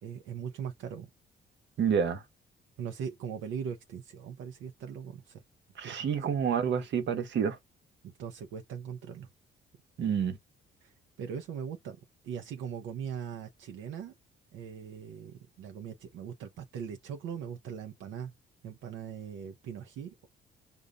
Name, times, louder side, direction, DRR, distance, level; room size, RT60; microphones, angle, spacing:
voice 1, 0.0-1.1 2.8-5.4 5.8-5.9 8.0-9.3 10.8-12.0 12.2-14.1 14.5-18.3 18.6-20.3, right 7 dB, 85° right, 0.7 m, -40 dB
voice 2, 1.8-2.2 5.8-7.6 10.0-10.4, right 7 dB, 65° right, 1.1 m, -28 dB
5.3 x 2.5 x 2.3 m
cardioid pair, 90°, 20 cm